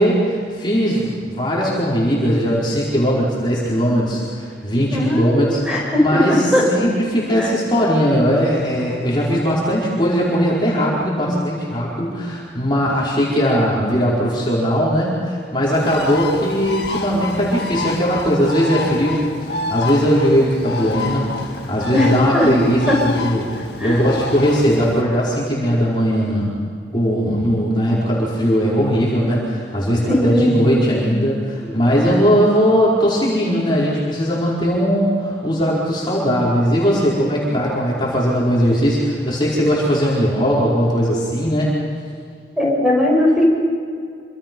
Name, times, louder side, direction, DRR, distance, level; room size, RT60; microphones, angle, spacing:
voice 1, 0.0-5.6 6.0-23.5 23.8-26.5 26.9-41.7, equal, 25° left, -7 dB, 5.0 m, -19 dB
voice 2, 4.9-6.6 7.4-7.5 21.9-22.5 22.9-23.0 23.8-24.1 30.0-30.7 31.6-31.8 42.6-43.5, left 1 dB, 5° right, -3 dB, 6.6 m, -18 dB
Bird, 15.7-25.0, left 3 dB, 60° left, 1.9 m, -29 dB
27.5 x 26.0 x 5.5 m, 2.2 s
head